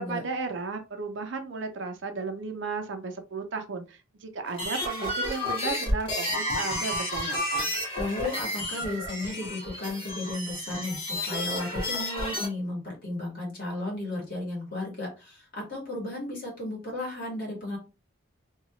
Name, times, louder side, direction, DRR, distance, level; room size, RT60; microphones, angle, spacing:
voice 1, 0.0-7.7, right 4 dB, 65° right, 6 dB, 0.5 m, -34 dB
sound 1, 4.5-12.5, left 1 dB, 25° left, 1.0 m, -31 dB
voice 2, 8.0-17.8, left 2 dB, 45° left, -3 dB, 1.5 m, -34 dB
2.8 x 2.3 x 2.9 m, 0.30 s
head